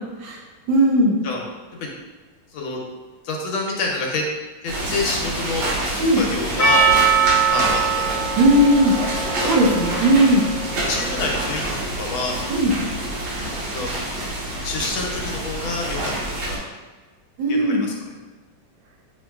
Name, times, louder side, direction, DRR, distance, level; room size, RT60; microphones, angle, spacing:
voice 1, 0.7-1.2 6.0-6.2 8.4-8.9 9.4-10.4 12.5-12.7 17.4-17.9, right 1 dB, 70° right, -2 dB, 1.4 m, -17 dB
voice 2, 3.2-4.2 4.6-6.8 7.5-8.3 9.4-10.0 10.9-12.4 13.7-13.9 14.6-16.1 16.5-16.6 17.5-17.9, left 3 dB, 75° left, 0 dB, 1.5 m, -28 dB
sound 1, 4.7-16.6, right 1 dB, 90° right, 1.8 m, -27 dB
Percussion, 6.6-11.1, right 6 dB, 25° right, 1.4 m, -22 dB
6.6 x 2.8 x 2.3 m, 1.2 s
omnidirectional pair, 2.3 m